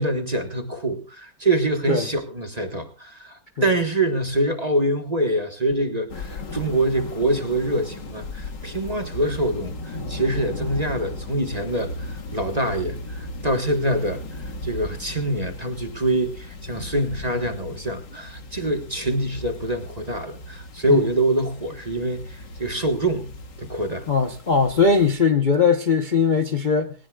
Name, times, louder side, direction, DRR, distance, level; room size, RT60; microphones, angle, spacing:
voice 1, 0.0-23.3 23.6-24.1, right 1 dB, 25° right, 1.4 m, -25 dB
sound 1, 6.1-25.1, left 1 dB, 70° left, 2.5 m, -36 dB
voice 2, 24.1-26.9, left 5 dB, 35° left, 0.9 m, -20 dB
19.5 x 19.0 x 2.4 m
omnidirectional pair, 2.0 m